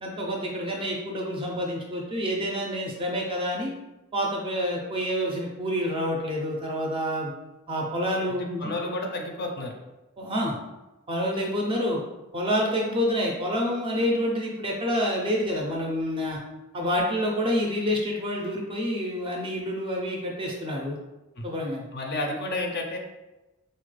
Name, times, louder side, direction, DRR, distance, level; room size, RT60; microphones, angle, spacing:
voice 1, 0.0-3.7 4.1-7.3 7.7-8.8 10.2-10.6 11.1-12.0 12.3-16.4 16.7-21.0 21.4-21.8, equal, 25° right, -1 dB, 0.4 m, -28 dB
voice 2, 8.3-9.8 21.4-21.5 21.9-23.0, left 2 dB, 45° left, 2 dB, 0.5 m, -31 dB
4.2 x 2.2 x 3.1 m, 1.0 s
head